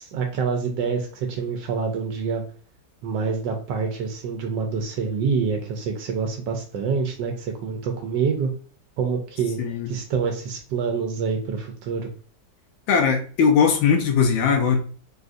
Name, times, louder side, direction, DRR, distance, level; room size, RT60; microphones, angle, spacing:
voice 1, 0.0-2.4 3.0-8.5 9.0-9.6 9.9-12.1, right 5 dB, 80° right, 1.2 m, -26 dB
voice 2, 9.6-9.9 12.9-14.8, left 6 dB, 85° left, 1.3 m, -19 dB
3.8 x 2.4 x 2.5 m
omnidirectional pair, 2.0 m